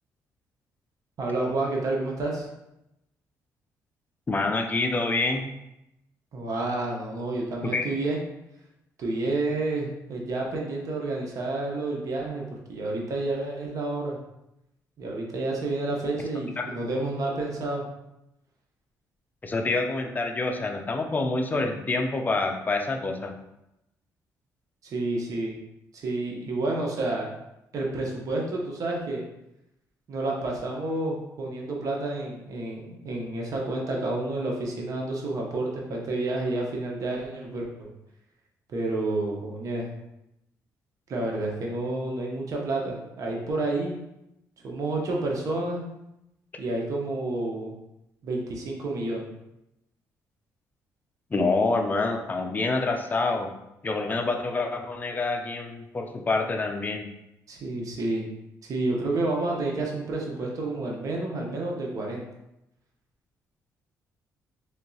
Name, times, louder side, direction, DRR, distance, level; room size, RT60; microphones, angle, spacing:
voice 1, 1.2-2.5 6.3-8.2 9.0-14.2 15.0-17.8 24.8-25.6 25.9-27.3 27.7-29.2 30.1-37.9 38.7-39.9 41.1-44.0 44.6-45.9 46.6-47.7 48.2-49.3 57.5-58.3 58.6-62.3, right 2 dB, 55° right, -1 dB, 0.8 m, -29 dB
voice 2, 4.3-5.4 7.6-7.9 16.6-16.7 19.4-23.3 51.3-53.5 53.8-57.1, left 3 dB, 25° left, 4 dB, 0.5 m, -27 dB
3.4 x 2.8 x 2.7 m, 0.87 s
cardioid pair, 90°, 7 cm